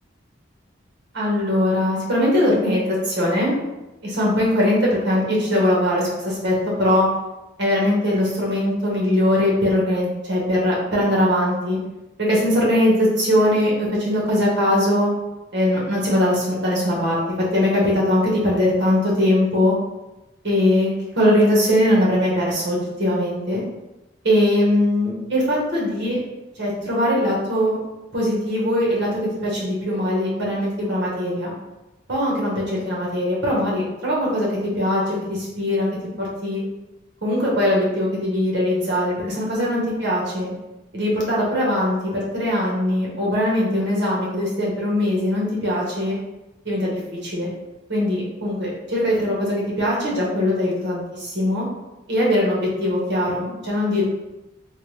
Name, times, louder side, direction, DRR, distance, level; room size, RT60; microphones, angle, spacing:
voice 1, 1.1-3.5 4.0-7.1 7.6-11.8 12.2-15.1 15.5-17.2 17.5-19.7 20.4-20.9 21.2-23.6 24.2-26.2 26.6-27.8 28.1-31.5 32.1-35.9 36.2-36.6 37.2-40.5 40.9-46.2 46.6-47.5 47.9-51.7 52.1-54.0, left 1 dB, 65° right, -4 dB, 1.2 m, -21 dB
3.4 x 2.5 x 3.1 m, 0.98 s
head